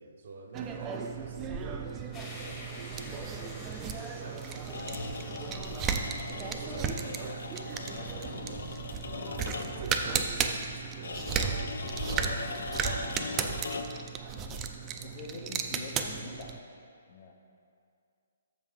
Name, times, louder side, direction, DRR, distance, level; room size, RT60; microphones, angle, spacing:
voice 1, 0.0-3.8 4.1-5.8 6.6-8.6 9.8-12.7 12.9-13.9, right 3 dB, 60° right, 2 dB, 0.6 m, -47 dB
sound 1, 0.5-16.6, right 6 dB, 20° right, 0.4 m, -35 dB
sound 2, 2.1-14.8, left 1 dB, 20° left, 1.3 m, -51 dB
sound 3, 4.6-10.0 11.0-14.1, left 4 dB, 80° left, 0.5 m, -39 dB
voice 2, 14.4-14.7 15.0-16.5 17.1-17.3, left 3 dB, 40° left, 1 dB, 0.7 m, -44 dB
6.5 x 5.4 x 4.8 m, 2.4 s
hypercardioid pair, 150°, 0 cm